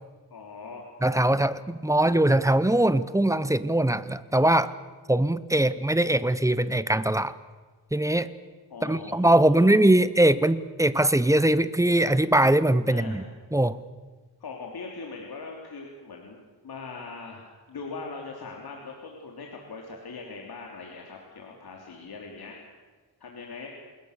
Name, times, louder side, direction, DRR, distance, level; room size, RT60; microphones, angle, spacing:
voice 1, 0.3-0.8 8.7-9.8 12.9-13.2 14.4-22.6 23.2-23.7, left 4 dB, 60° left, 0 dB, 3.3 m, -41 dB
voice 2, 1.0-4.7 5.1-7.3 7.9-8.3 8.8-13.2 13.5-13.8, right 1 dB, 10° right, 15 dB, 0.7 m, -21 dB
28.5 x 21.0 x 6.7 m, 1.4 s
wide cardioid pair, 140°, 41 cm